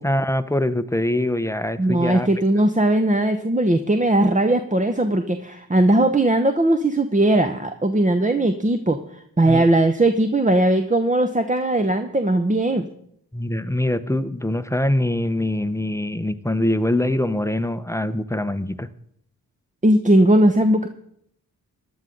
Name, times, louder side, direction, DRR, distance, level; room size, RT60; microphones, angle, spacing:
voice 1, 0.0-2.3 9.4-9.6 13.3-18.9, left 1 dB, 5° left, 12 dB, 0.8 m, -23 dB
voice 2, 1.8-12.9 19.8-20.9, right 1 dB, 20° right, 7 dB, 0.9 m, -19 dB
15.0 x 11.0 x 3.9 m, 0.70 s
cardioid pair, 45°, 39 cm